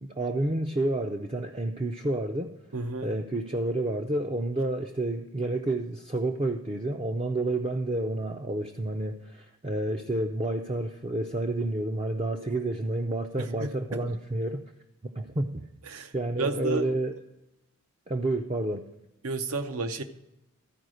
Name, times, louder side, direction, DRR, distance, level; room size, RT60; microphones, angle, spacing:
voice 1, 0.0-2.5 3.0-14.6 15.0-15.6 16.1-17.1 18.1-18.8, right 2 dB, 25° right, 3 dB, 0.4 m, -30 dB
voice 2, 2.7-3.1 12.5-12.6 13.4-14.1 15.9-16.1 16.4-16.9 19.2-20.0, right 2 dB, 80° right, 9 dB, 0.7 m, -32 dB
13.5 x 4.8 x 6.3 m, 0.91 s
head